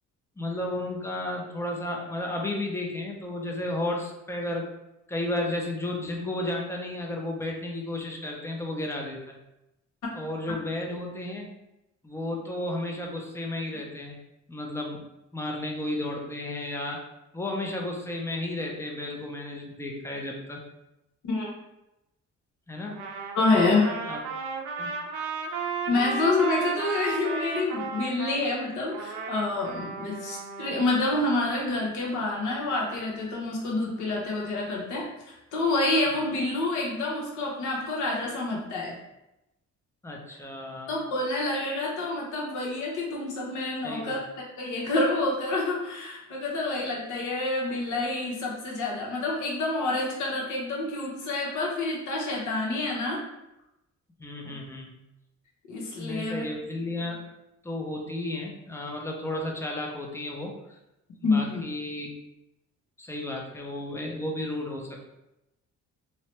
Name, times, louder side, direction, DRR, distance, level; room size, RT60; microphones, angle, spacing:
voice 1, 0.4-4.7 5.1-9.4 10.1-11.5 12.0-14.2 14.5-15.0 15.3-17.0 17.3-20.6 22.7-23.0 24.1-24.2 24.8-24.9 36.1-36.2 40.0-41.0 43.8-44.2 54.2-54.9 56.0-57.3 57.6-60.5 61.2-62.1 63.0-65.0, left 1 dB, 10° left, 0 dB, 0.5 m, -33 dB
Trumpet, 22.9-28.4 28.9-30.9, right 4 dB, 90° right, 0.5 m, -34 dB
voice 2, 23.3-23.9 25.9-38.9 40.9-44.2 44.6-53.2 54.4-54.6 55.7-56.4 61.2-61.6, left 2 dB, 75° left, -3 dB, 1.0 m, -28 dB
2.8 x 2.1 x 3.1 m, 0.92 s
cardioid pair, 90°, 30 cm